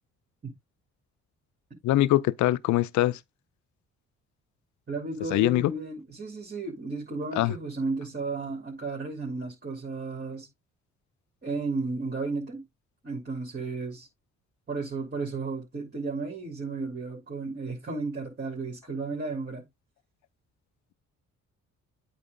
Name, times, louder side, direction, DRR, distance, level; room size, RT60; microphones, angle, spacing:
voice 1, 1.8-3.2 5.3-5.7 7.4-7.5, left 15 dB, 70° left, 0.5 m, -23 dB
voice 2, 4.9-10.5 11.4-12.6 13.0-14.1 14.7-19.7, right 3 dB, 35° right, 3.0 m, -33 dB
8.4 x 3.0 x 5.1 m
cardioid pair, 90°, 30 cm